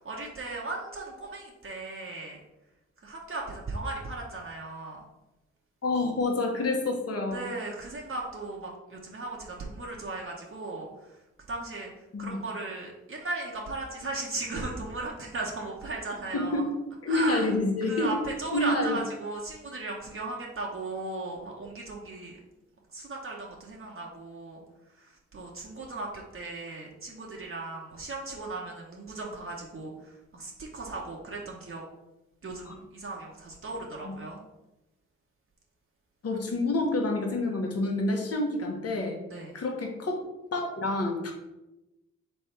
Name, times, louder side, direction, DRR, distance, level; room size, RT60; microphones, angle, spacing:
voice 1, 0.0-2.4 3.0-5.0 7.3-10.9 11.5-11.9 12.2-16.6 17.1-17.5 17.9-22.4 22.9-24.6 25.0-31.8 32.4-34.4 39.3-39.6, right 2 dB, 45° right, -2 dB, 1.0 m, -37 dB
voice 2, 5.8-7.4 12.1-12.4 16.3-16.6 17.0-18.1 18.5-19.0 32.6-32.7 34.0-34.1 36.2-39.2 39.5-40.2 40.5-41.3, left 2 dB, 50° left, 2 dB, 1.2 m, -28 dB
3.5 x 3.4 x 4.3 m, 0.98 s
supercardioid pair, 40°, 30 cm